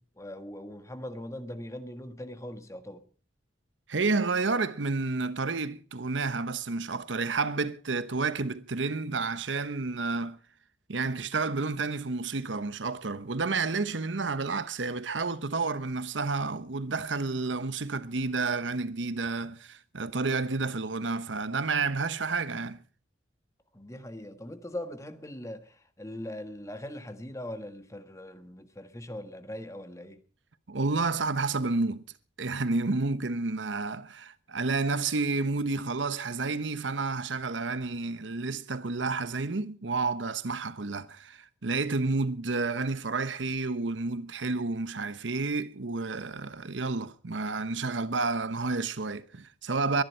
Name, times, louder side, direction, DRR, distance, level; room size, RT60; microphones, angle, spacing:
voice 1, 0.0-3.0 23.7-30.2, left 1 dB, 15° left, 1.5 m, -41 dB
voice 2, 3.9-10.4 10.9-22.8 30.7-32.0 32.4-50.0, right 3 dB, 85° right, 1.0 m, -30 dB
23.0 x 10.5 x 4.5 m
head